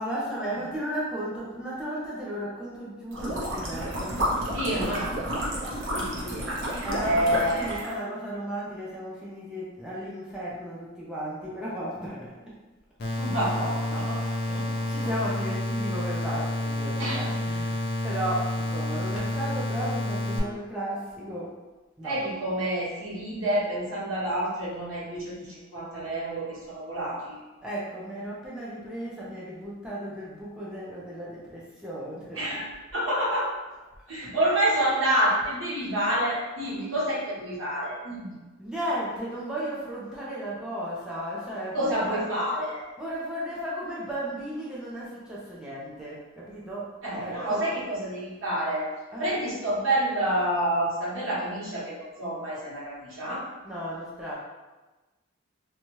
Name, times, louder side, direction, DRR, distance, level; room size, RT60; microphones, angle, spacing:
voice 1, 0.0-4.9 6.8-12.5 14.2-21.5 22.0-22.2 27.6-32.6 36.3-36.7 38.6-42.4 42.7-47.7 49.1-49.3 53.6-54.3, equal, 5° right, -7 dB, 0.5 m, -35 dB
sound 1, 3.1-7.9, equal, 65° right, 0.7 m, -31 dB
voice 2, 4.5-5.2 5.9-7.8 13.2-14.2 14.5-15.1 17.0-17.3 22.0-27.4 32.3-32.6 32.9-33.5 34.1-38.3 41.7-42.8 47.0-48.9 49.2-53.4, right 1 dB, 80° right, -7 dB, 1.1 m, -28 dB
sound 2, 13.0-20.4, left 1 dB, 50° left, 0.5 m, -29 dB
2.7 x 2.3 x 3.0 m, 1.2 s
head